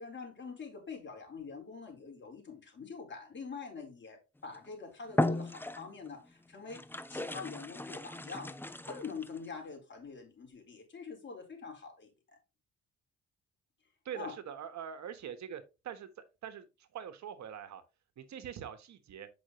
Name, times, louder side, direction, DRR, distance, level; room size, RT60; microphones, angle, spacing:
voice 1, 0.0-6.8 7.1-8.6 8.9-12.1 14.1-14.3, left 5 dB, 40° left, 4.2 m, -45 dB
sound 1, 4.4-4.7 5.1-6.1 6.7-9.5, left 1 dB, 5° left, 0.7 m, -35 dB
voice 2, 14.0-16.1 16.4-16.7 16.9-17.8 18.2-19.3, right 9 dB, 65° right, 1.4 m, -43 dB
8.6 x 6.0 x 3.1 m
cardioid pair, 90°, 30 cm